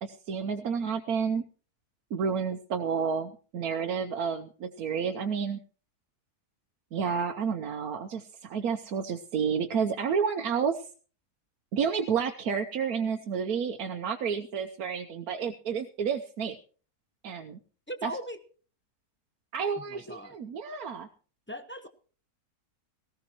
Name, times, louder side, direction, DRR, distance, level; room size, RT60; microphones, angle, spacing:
voice 1, 0.0-1.4 2.1-5.6 6.9-10.8 11.7-16.6 17.2-17.6 18.0-18.1 19.5-21.1, right 6 dB, 70° right, 4 dB, 1.2 m, -30 dB
voice 2, 17.9-18.4 19.8-20.4 21.5-21.9, equal, 10° left, 8 dB, 0.8 m, -39 dB
18.5 x 15.0 x 3.0 m, 0.39 s
omnidirectional pair, 1.7 m